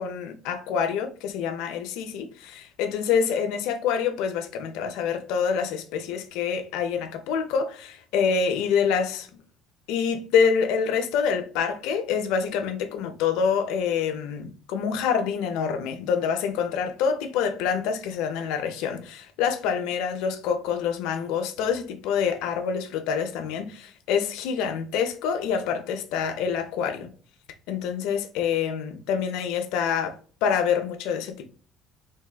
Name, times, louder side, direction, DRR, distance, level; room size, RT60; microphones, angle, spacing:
voice 1, 0.0-9.3 9.9-27.1 27.7-31.5, left 6 dB, 75° left, 0.5 m, -26 dB
3.3 x 2.1 x 2.2 m
supercardioid pair, 75°, 0 cm